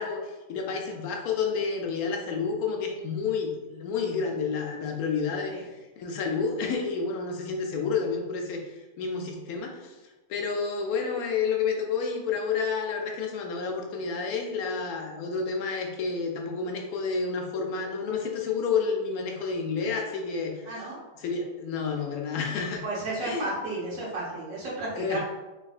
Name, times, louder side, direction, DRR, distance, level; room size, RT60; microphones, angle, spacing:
voice 1, 0.0-5.5 6.0-8.6 9.0-9.9 10.3-20.7 21.2-22.8 23.2-23.5 25.0-25.2, left 5 dB, 80° left, 2 dB, 1.1 m, -30 dB
voice 2, 20.6-21.0 22.8-25.2, right 2 dB, 65° right, -6 dB, 1.5 m, -33 dB
3.4 x 3.2 x 2.4 m, 1.1 s
omnidirectional pair, 1.6 m